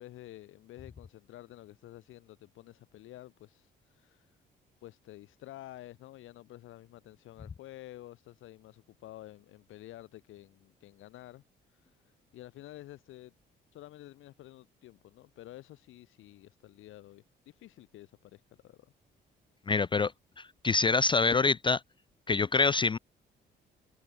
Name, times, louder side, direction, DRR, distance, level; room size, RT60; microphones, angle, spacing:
voice 1, 0.0-4.4 4.8-11.4 11.7-13.3 13.7-18.9, left 15 dB, 85° left, 3.8 m, -50 dB
voice 2, 19.7-20.1 20.6-21.8 22.3-23.0, left 4 dB, 25° left, 0.4 m, -25 dB
cardioid pair, 90°, 20 cm